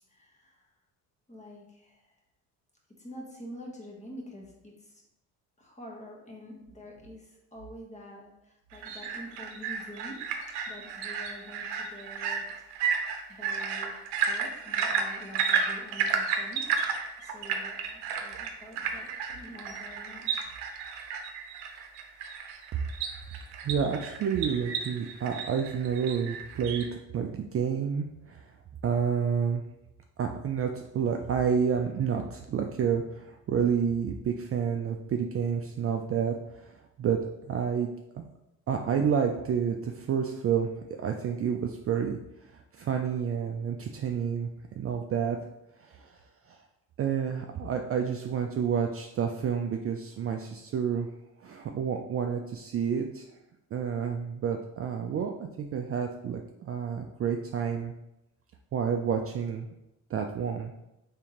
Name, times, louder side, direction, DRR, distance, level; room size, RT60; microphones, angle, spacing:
voice 1, 0.1-0.6 1.3-2.1 3.0-5.0 5.6-10.2 10.7-12.5 12.8-16.8 17.2-20.5, equal, 20° left, -1 dB, 1.2 m, -47 dB
sound 1, 8.7-26.9, right 6 dB, 90° right, 0.6 m, -33 dB
voice 2, 23.6-26.9 27.1-28.4 28.8-29.6 30.2-36.7 37.0-38.3 38.7-40.7 41.0-42.2 42.5-44.5 44.8-45.4 45.8-46.1 47.0-51.1 51.4-53.3 53.7-57.9 58.7-59.7 60.1-60.7, right 7 dB, 40° right, 3 dB, 0.4 m, -29 dB
3.6 x 3.4 x 2.9 m, 0.89 s
supercardioid pair, 75°, 38 cm